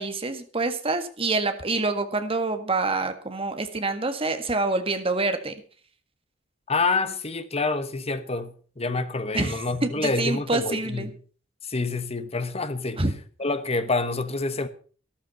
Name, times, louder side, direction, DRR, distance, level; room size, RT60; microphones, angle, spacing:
voice 1, 0.0-5.5 9.3-11.1 13.0-13.1, right 3 dB, 30° right, 1.7 m, -26 dB
voice 2, 6.7-11.2 11.6-13.0 13.4-14.7, left 3 dB, 30° left, 1.2 m, -27 dB
13.0 x 12.5 x 5.5 m
head